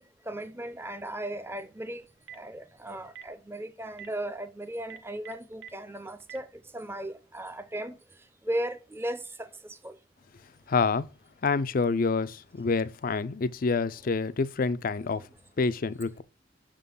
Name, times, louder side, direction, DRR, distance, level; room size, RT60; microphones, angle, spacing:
voice 1, 0.0-2.0 2.3-6.5 6.7-8.0 8.4-10.0, right 1 dB, 15° right, 0.6 m, -36 dB
Telephone, 2.0-2.5 3.0-3.3 3.9-4.1 4.8-5.7 6.2-6.4, right 9 dB, 65° right, 0.8 m, -44 dB
voice 2, 10.7-11.1 11.4-15.3 15.6-16.2, left 4 dB, 50° left, 0.5 m, -27 dB
6.6 x 3.8 x 5.4 m
head